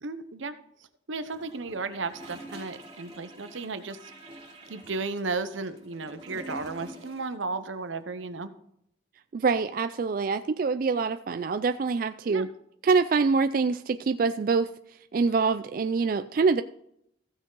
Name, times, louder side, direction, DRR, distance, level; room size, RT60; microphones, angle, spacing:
voice 1, 0.0-0.6 1.1-4.1 4.7-8.5 12.3-12.5, right 3 dB, 85° right, 11 dB, 0.8 m, -34 dB
Gurgling / Toilet flush, 1.3-7.3 7.6-7.7, right 1 dB, 25° right, 3.0 m, -46 dB
voice 2, 9.3-12.5 12.8-14.7 15.1-16.6, right 4 dB, 45° right, 10 dB, 0.3 m, -25 dB
15.0 x 6.3 x 3.9 m, 0.73 s
head